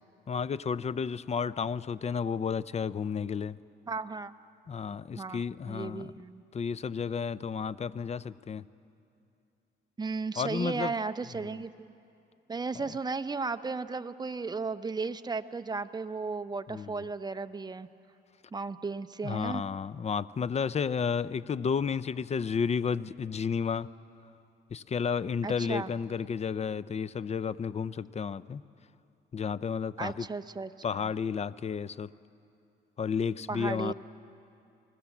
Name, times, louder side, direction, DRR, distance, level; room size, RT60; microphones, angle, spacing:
voice 1, 0.3-3.6 4.7-6.1 6.5-8.6 10.4-10.9 16.7-17.0 19.2-23.9 24.7-28.6 29.3-30.3 30.8-32.1 33.0-33.9, left 6 dB, 35° left, 18 dB, 0.5 m, -32 dB
voice 2, 3.9-4.3 5.2-6.4 10.0-11.9 12.5-17.9 18.5-19.6 25.4-25.9 30.0-31.1 33.5-33.9, right 4 dB, 20° right, 10 dB, 0.8 m, -35 dB
28.5 x 20.0 x 7.2 m, 2.7 s
cardioid pair, 90°, 20 cm